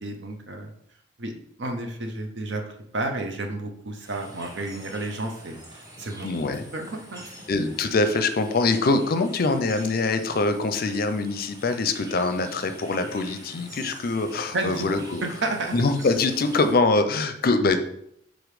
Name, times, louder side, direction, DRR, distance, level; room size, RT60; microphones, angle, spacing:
voice 1, 0.0-0.7 1.2-1.3 1.6-2.6 2.9-6.3 6.7-7.2 14.5-14.8 15.2-15.7, right 2 dB, 65° right, 4 dB, 0.8 m, -31 dB
sound 1, 4.0-16.7, equal, 20° right, 1.0 m, -45 dB
voice 2, 6.2-6.6 7.5-15.2 15.7-17.8, left 3 dB, 50° left, 9 dB, 0.5 m, -24 dB
5.1 x 3.9 x 4.9 m, 0.72 s
head